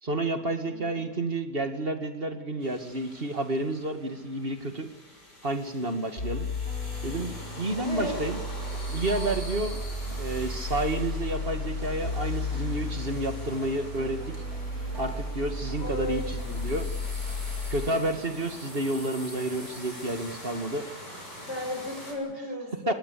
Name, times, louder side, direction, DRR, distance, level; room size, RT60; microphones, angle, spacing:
voice 1, 0.0-4.9 5.4-6.5 7.0-8.4 8.9-14.3 15.0-16.9 17.7-20.9 22.9-23.0, right 2 dB, 35° right, 7 dB, 2.4 m, -30 dB
voice 2, 0.6-1.0 7.8-8.2 15.8-16.7 21.5-22.9, left 1 dB, 40° left, 2 dB, 7.2 m, -35 dB
Ghost Ambience sound, 2.6-22.1, left 1 dB, 85° left, 7.1 m, -45 dB
sound 1, 6.2-17.9, left 2 dB, 55° left, 6.3 m, -34 dB
sound 2, 8.6-21.8, right 1 dB, 85° right, 6.6 m, -49 dB
25.0 x 19.0 x 8.6 m, 1.1 s
omnidirectional pair, 1.8 m